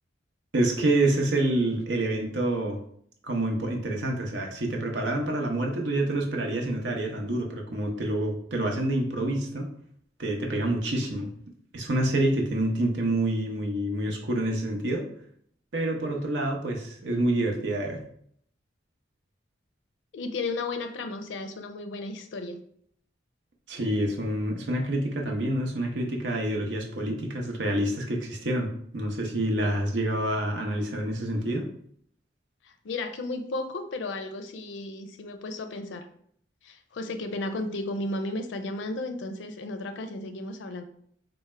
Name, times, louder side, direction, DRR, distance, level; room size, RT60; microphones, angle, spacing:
voice 1, 0.5-2.8 3.2-9.7 10.2-11.3 11.7-15.0 15.7-18.0 23.7-28.7 28.9-31.7, right 1 dB, 80° right, 1 dB, 0.7 m, -27 dB
voice 2, 20.1-22.6 32.6-36.1 36.6-40.8, left 2 dB, 85° left, 7 dB, 0.4 m, -34 dB
4.4 x 2.1 x 3.2 m, 0.65 s
head